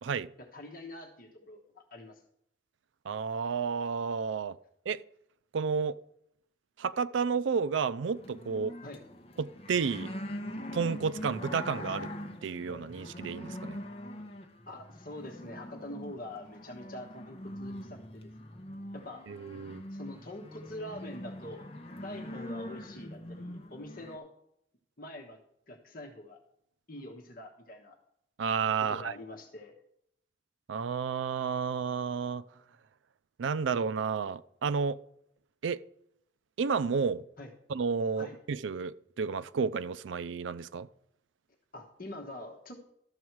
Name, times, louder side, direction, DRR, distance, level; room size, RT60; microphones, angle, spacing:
voice 1, 0.4-2.2 8.8-9.0 14.7-18.3 18.9-19.2 19.9-21.6 22.0-24.3 25.0-25.4 25.7-26.4 26.9-28.0 28.8-29.7 37.4-37.5 38.2-38.4 41.7-42.8, left 1 dB, 45° left, 1.3 m, -45 dB
voice 2, 3.1-4.6 4.9-5.0 5.5-6.0 6.8-8.7 9.4-10.1 10.7-12.1 12.4-13.8 19.3-19.8 28.4-29.1 30.7-32.4 33.4-35.0 35.6-35.8 36.6-37.2 37.7-40.9, right 5 dB, 75° right, 0.4 m, -31 dB
sound 1, 8.1-24.2, left 1 dB, 30° left, 0.9 m, -43 dB
12.5 x 7.2 x 4.6 m
head